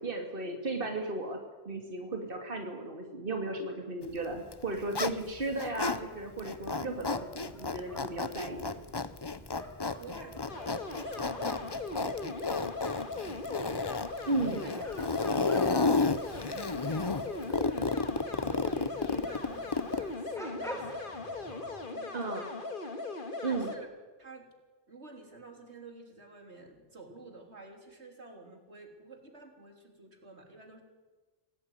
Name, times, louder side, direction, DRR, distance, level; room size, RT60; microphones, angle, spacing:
voice 1, 0.0-1.4 1.7-8.7 14.3-14.6 22.1-22.4 23.4-23.7, right 2 dB, 55° right, 3 dB, 2.7 m, -35 dB
Zipper (clothing), 4.4-6.0 6.4-20.1, left 3 dB, 25° left, 0.7 m, -32 dB
sound 1, 6.7-21.9, equal, 5° left, 4.6 m, -50 dB
voice 2, 10.0-10.7 11.0-13.8 14.5-14.7 15.3-16.8 17.1-22.6 23.5-23.9 24.2-24.5 24.9-30.8, right 3 dB, 85° right, 4 dB, 4.0 m, -51 dB
sound 2, 10.5-23.8, left 3 dB, 50° left, 2.1 m, -39 dB
26.0 x 18.0 x 9.7 m, 1.3 s
omnidirectional pair, 1.1 m